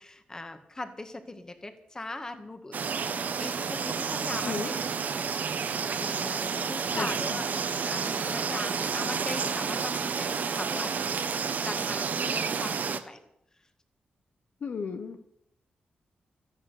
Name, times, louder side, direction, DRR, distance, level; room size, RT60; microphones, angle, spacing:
voice 1, 0.0-2.8 3.4-4.8 5.5-11.2 11.6-13.2, left 2 dB, 20° left, 8 dB, 1.8 m, -40 dB
sound 1, 2.7-13.0, right 6 dB, 60° right, 1.3 m, -30 dB
voice 2, 6.9-7.4 14.6-15.2, left 5 dB, 60° left, 8 dB, 1.0 m, -35 dB
14.0 x 11.0 x 8.1 m, 0.77 s
wide cardioid pair, 120°, 3 cm